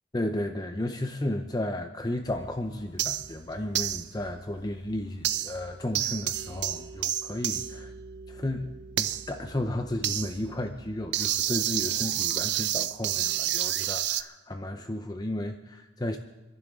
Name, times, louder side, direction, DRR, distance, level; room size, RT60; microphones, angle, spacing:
voice 1, 0.1-7.9 8.3-16.2, left 1 dB, 20° left, 5 dB, 0.7 m, -33 dB
sound 1, 2.2-7.5, left 1 dB, 65° left, 3.0 m, -54 dB
sound 2, 3.0-3.4 3.7-4.1 5.2-5.7 5.9-14.2, right 12 dB, 70° right, 0.5 m, -30 dB
29.0 x 11.0 x 3.7 m, 1.1 s
head